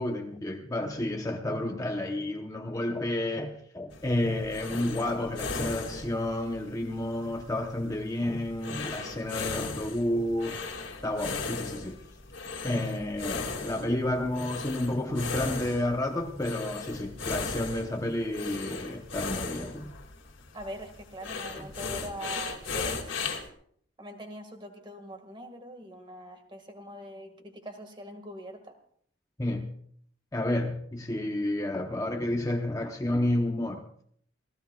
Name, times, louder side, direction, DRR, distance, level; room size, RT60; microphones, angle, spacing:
voice 1, 0.0-10.6 11.0-12.0 12.6-19.9 21.6-21.7 29.4-29.7 30.3-33.8, left 1 dB, 15° left, 0.8 m, -30 dB
sound 1, 3.9-23.5, left 4 dB, 70° left, 2.2 m, -37 dB
voice 2, 19.2-19.5 20.5-23.2 24.0-28.8, right 1 dB, 25° right, 1.8 m, -43 dB
28.0 x 15.5 x 2.3 m
head